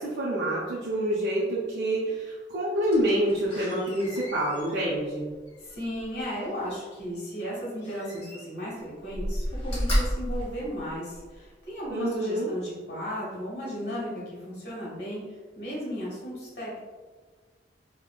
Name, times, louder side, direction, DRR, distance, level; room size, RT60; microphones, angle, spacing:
voice 1, 0.0-5.3 11.9-12.5, right 1 dB, 70° right, -7 dB, 0.5 m, -27 dB
Slam, 2.8-6.7 7.8-8.7 9.1-11.4 11.9-12.0, equal, 30° left, 1.0 m, -33 dB
voice 2, 5.6-15.2 15.5-16.8, equal, 65° left, -6 dB, 1.1 m, -35 dB
2.9 x 2.1 x 2.3 m, 1.4 s
head